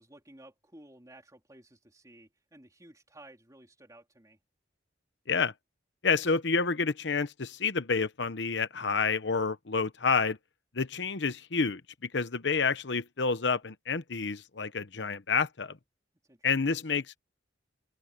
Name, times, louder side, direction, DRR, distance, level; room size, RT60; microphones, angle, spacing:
voice 1, 0.0-4.4 16.3-16.7, right 1 dB, 20° right, 3.5 m, -55 dB
voice 2, 6.0-10.4 10.7-15.8 16.4-17.2, left 5 dB, 70° left, 0.9 m, -29 dB
open air
head